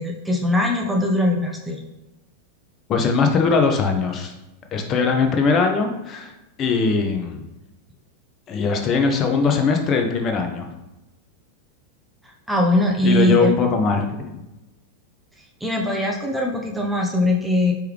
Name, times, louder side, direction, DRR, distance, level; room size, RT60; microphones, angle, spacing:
voice 1, 0.0-1.8 12.5-13.5 15.6-17.7, left 1 dB, 5° right, 0 dB, 0.6 m, -21 dB
voice 2, 2.9-4.3 4.7-6.3 6.6-7.4 8.5-10.7 13.0-14.3, left 4 dB, 30° left, 4 dB, 0.7 m, -20 dB
4.5 x 3.1 x 3.5 m, 0.99 s
figure-of-eight pair, 90°, 0 cm